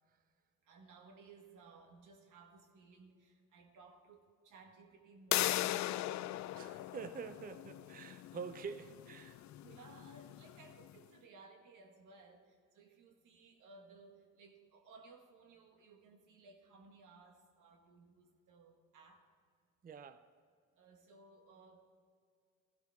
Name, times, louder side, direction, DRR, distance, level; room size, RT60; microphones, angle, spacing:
voice 1, 0.6-6.6 9.3-19.3 20.8-22.1, right 4 dB, 85° right, 1.6 m, -60 dB
sound 1, 5.3-10.9, left 14 dB, 70° left, 0.4 m, -39 dB
voice 2, 6.5-9.4 19.8-20.3, right 6 dB, 30° right, 0.5 m, -47 dB
15.0 x 12.0 x 3.5 m
cardioid pair, 90°, 30 cm